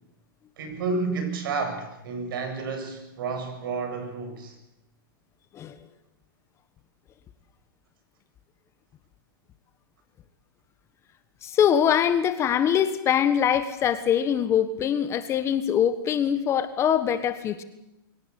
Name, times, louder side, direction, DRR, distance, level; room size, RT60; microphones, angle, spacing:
voice 1, 0.6-4.6, right 4 dB, 70° right, 6 dB, 7.1 m, -30 dB
voice 2, 11.4-17.6, left 9 dB, 25° left, 12 dB, 1.3 m, -23 dB
23.5 x 17.5 x 8.3 m, 0.91 s
hypercardioid pair, 145°, 12 cm